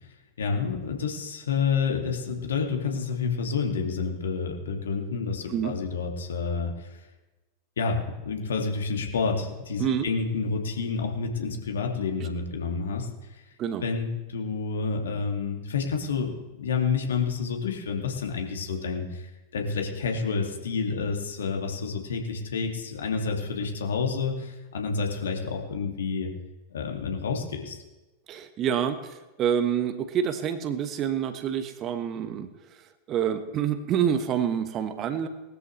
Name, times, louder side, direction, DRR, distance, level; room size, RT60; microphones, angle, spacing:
voice 1, 0.4-7.0 7.8-13.4 13.8-26.3 26.7-27.8, left 5 dB, 65° left, 2 dB, 2.3 m, -29 dB
voice 2, 28.3-35.3, right 8 dB, 30° right, 10 dB, 1.2 m, -27 dB
20.0 x 13.5 x 3.2 m, 1.1 s
figure-of-eight pair, 90°, 0 cm